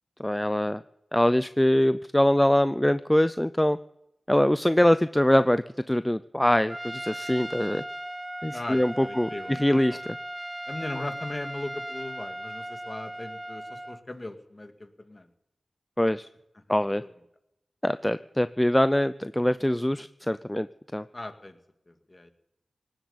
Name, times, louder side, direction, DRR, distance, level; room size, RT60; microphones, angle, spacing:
voice 1, 0.2-0.8 1.1-3.8 4.3-7.8 8.4-10.2 16.0-16.3 16.7-17.0 17.8-20.7 20.9-21.0, left 1 dB, 10° left, 13 dB, 0.5 m, -23 dB
Trumpet, 6.7-14.0, right 1 dB, 15° right, 1.1 m, -37 dB
voice 2, 8.5-10.0 10.7-15.3 17.0-17.1 21.1-21.6 21.9-22.3, left 2 dB, 35° left, 8 dB, 2.0 m, -38 dB
18.5 x 7.9 x 8.8 m, 0.83 s
cardioid pair, 55°, 0 cm